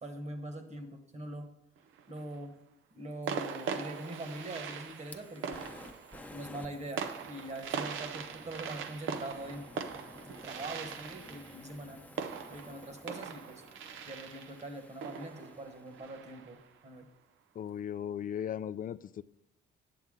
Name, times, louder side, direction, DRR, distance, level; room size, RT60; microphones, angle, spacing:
voice 1, 0.0-1.5 2.1-2.6 2.9-5.9 6.3-9.7 10.4-12.0 12.5-13.6 14.1-17.1, right 1 dB, 35° right, 6 dB, 1.4 m, -43 dB
sound 1, 1.8-2.4 3.3-16.7, right 6 dB, 85° right, 0.7 m, -41 dB
Fire, 3.2-16.3, left 2 dB, 10° left, 0.8 m, -54 dB
voice 2, 17.5-19.2, left 9 dB, 45° left, 16 dB, 0.4 m, -37 dB
9.2 x 7.2 x 3.8 m, 0.88 s
cardioid pair, 90°, 20 cm